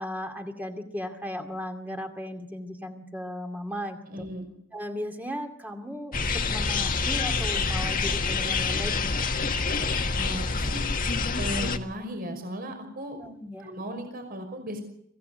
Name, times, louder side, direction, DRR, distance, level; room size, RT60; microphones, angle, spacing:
voice 1, 0.0-4.3 4.7-9.1 13.2-13.7, equal, 10° right, 4 dB, 2.4 m, -36 dB
voice 2, 4.1-4.5 10.2-10.9 11.4-13.2 13.6-14.8, equal, 50° right, 6 dB, 5.5 m, -36 dB
sound 1, 6.1-11.8, left 4 dB, 45° left, 1.8 m, -27 dB
26.0 x 16.5 x 8.0 m, 0.73 s
head